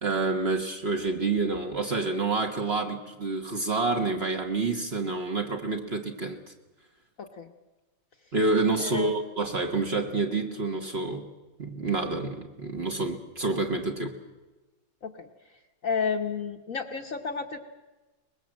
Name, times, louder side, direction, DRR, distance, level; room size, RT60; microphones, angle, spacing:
voice 1, 0.0-6.4 8.3-11.2 11.6-14.2, right 3 dB, 35° right, 4 dB, 1.4 m, -28 dB
voice 2, 7.2-7.5 8.8-9.1 15.0-15.3 15.8-17.6, left 5 dB, 50° left, 5 dB, 1.3 m, -31 dB
23.0 x 20.5 x 7.6 m, 1.1 s
omnidirectional pair, 2.2 m